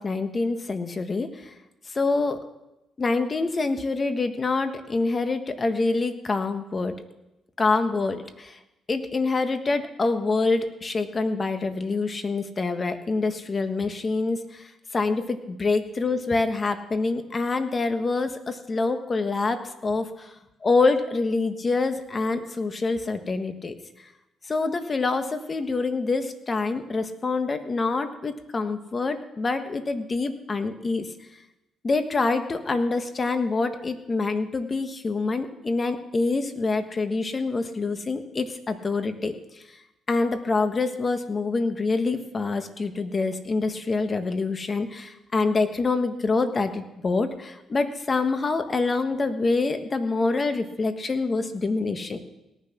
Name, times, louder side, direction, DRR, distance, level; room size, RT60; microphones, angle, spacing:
voice 1, 0.0-1.5 1.9-2.4 3.0-6.9 7.6-8.6 8.9-20.3 20.6-23.7 24.4-31.1 31.8-39.3 40.1-52.3, left 3 dB, 35° left, 9 dB, 1.4 m, -26 dB
18.0 x 10.0 x 6.0 m, 0.93 s
cardioid pair, 90°, 0 cm